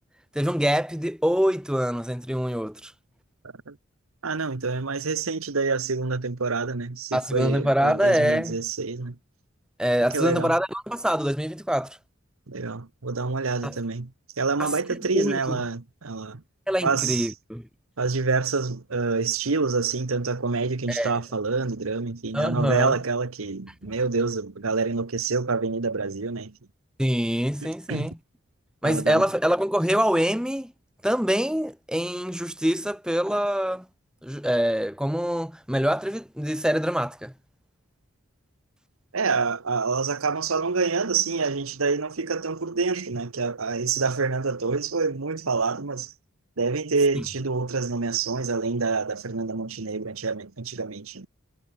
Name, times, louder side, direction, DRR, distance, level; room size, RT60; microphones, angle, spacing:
voice 1, 0.3-2.9 7.1-8.6 9.8-12.0 13.6-13.8 14.6-15.6 16.7-17.6 20.9-21.2 22.3-23.0 27.0-28.2 28.8-30.7 31.0-33.8 34.2-37.3 47.1-47.2, equal, 5° right, 1.6 m, -25 dB
voice 2, 4.2-9.1 10.1-10.5 12.5-14.1 14.4-16.4 16.8-17.3 18.0-26.5 27.9-28.1 28.8-29.2 39.1-46.1 46.6-51.3, right 4 dB, 90° right, 1.2 m, -27 dB
head